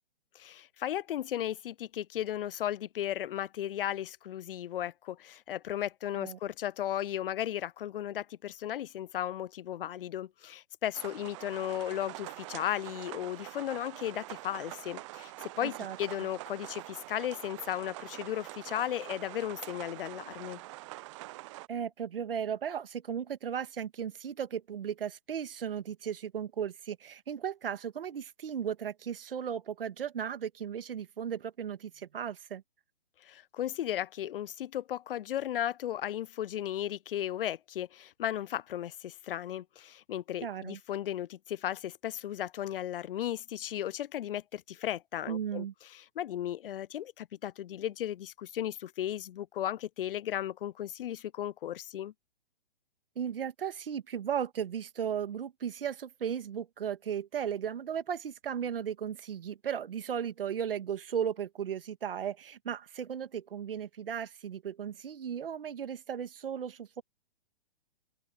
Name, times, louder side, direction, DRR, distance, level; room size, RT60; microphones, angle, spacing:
voice 1, 0.4-20.6 33.2-52.1, left 11 dB, 65° left, 0.5 m, -35 dB
sound 1, 10.9-21.7, right 21 dB, 30° right, 0.6 m, -45 dB
voice 2, 15.6-16.0 21.7-32.6 40.4-40.8 45.3-45.7 53.2-67.0, right 8 dB, 70° right, 2.0 m, -36 dB
open air
hypercardioid pair, 125°, 30 cm